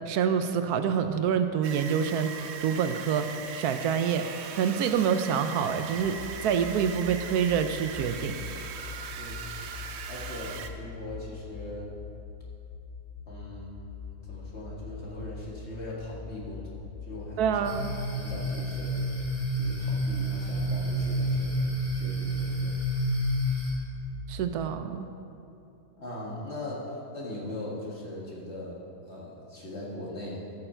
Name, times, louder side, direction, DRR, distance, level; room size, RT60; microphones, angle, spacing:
voice 1, 0.1-2.3 2.6-3.3 3.5-4.3 4.5-8.4 17.4-17.9 24.3-25.1, right 7 dB, 80° right, 9 dB, 1.1 m, -26 dB
sound 1, 1.6-10.7, right 6 dB, 60° right, 0.7 m, -40 dB
sound 2, 6.0-24.5, left 6 dB, 75° left, 1.4 m, -43 dB
voice 2, 9.2-9.5 10.1-11.9 13.3-17.7 18.1-19.1 19.6-22.8 26.0-26.8 27.1-28.8 29.0-30.4, left 1 dB, 45° left, -5 dB, 2.1 m, -40 dB
sound 3, 17.6-23.7, equal, 10° left, 2.0 m, -29 dB
13.5 x 6.9 x 4.4 m, 2.7 s
omnidirectional pair, 1.7 m